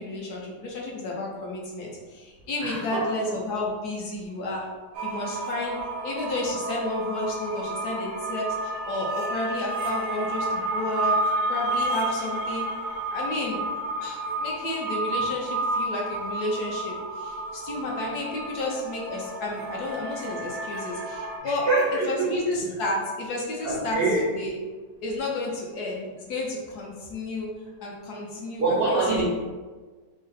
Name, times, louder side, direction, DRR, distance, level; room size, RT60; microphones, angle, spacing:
voice 1, 0.0-4.7 5.0-5.8 6.0-11.1 11.5-12.6 13.1-13.6 14.0-21.7 22.1-24.0 24.3-24.5 25.0-27.5 27.8-29.2, left 2 dB, 70° left, -3 dB, 1.3 m, -31 dB
voice 2, 2.6-3.1 21.4-22.3 23.6-24.3 28.6-29.2, right 3 dB, 60° right, -6 dB, 0.6 m, -25 dB
sound 1, 4.9-21.4, right 2 dB, 80° right, 1.2 m, -31 dB
3.8 x 2.1 x 3.9 m, 1.4 s
omnidirectional pair, 1.8 m